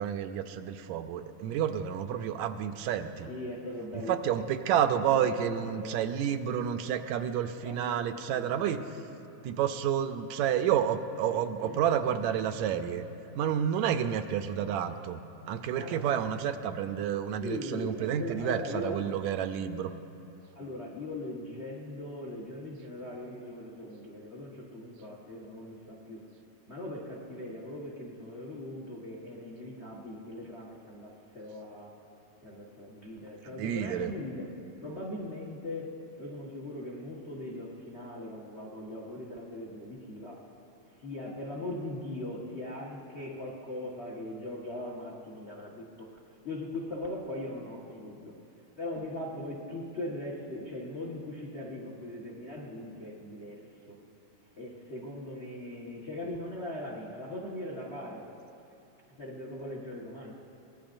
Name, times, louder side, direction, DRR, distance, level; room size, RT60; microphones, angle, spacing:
voice 1, 0.0-3.3 3.9-8.8 9.4-13.0 13.4-15.2 15.5-19.9 33.5-34.1, right 9 dB, 80° right, 9 dB, 1.9 m, -30 dB
voice 2, 3.3-4.2 5.0-6.0 7.6-9.2 11.3-11.8 15.7-16.0 17.4-19.0 20.5-26.3 26.7-32.0 32.4-34.5 34.8-40.5 41.0-46.1 46.4-48.3 48.8-54.0 54.6-58.3 59.1-60.3, left 1 dB, 35° left, -2 dB, 1.0 m, -40 dB
23.0 x 19.5 x 2.6 m, 2.7 s
omnidirectional pair, 3.3 m